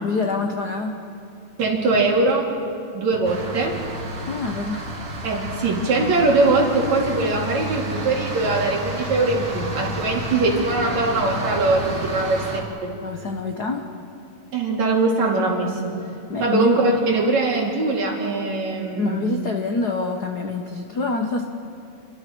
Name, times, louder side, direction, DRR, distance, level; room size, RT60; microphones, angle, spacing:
voice 1, 0.0-1.0 4.2-4.9 13.0-13.9 16.3-16.7 19.0-21.4, left 3 dB, 90° left, 3 dB, 0.8 m, -26 dB
voice 2, 1.6-2.5 2.9-3.8 5.2-12.9 14.5-15.9 16.4-19.2, right 3 dB, 60° right, -1 dB, 4.0 m, -21 dB
sound 1, 3.2-12.6, right 1 dB, 35° right, 2.7 m, -30 dB
30.0 x 24.0 x 4.6 m, 2.7 s
omnidirectional pair, 3.6 m